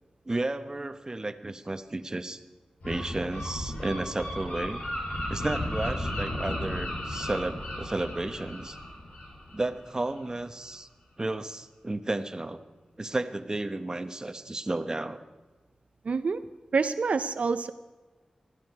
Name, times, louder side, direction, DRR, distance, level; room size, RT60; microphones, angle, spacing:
voice 1, 0.2-2.4 2.8-4.8 5.3-8.8 9.5-10.9 11.2-12.6 13.0-15.2, right 2 dB, 30° right, 9 dB, 1.0 m, -32 dB
Gull seagull, 2.8-10.3, left 1 dB, 90° left, 5.5 m, -35 dB
voice 2, 16.0-16.4 16.7-17.7, right 4 dB, 75° right, 10 dB, 0.5 m, -27 dB
20.5 x 14.5 x 4.8 m, 1.3 s
wide cardioid pair, 80°, 2 cm